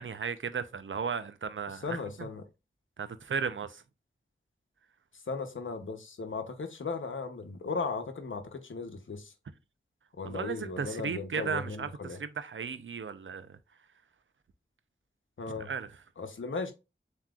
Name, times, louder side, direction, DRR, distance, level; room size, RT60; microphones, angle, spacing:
voice 1, 0.0-2.0 3.0-3.8 10.2-13.6 15.6-15.9, right 6 dB, 85° right, 0.6 m, -35 dB
voice 2, 1.8-2.4 5.3-9.3 10.2-12.2 15.4-15.7 16.2-16.7, left 4 dB, 85° left, 0.8 m, -36 dB
7.5 x 2.9 x 2.4 m
wide cardioid pair, 45°, 20 cm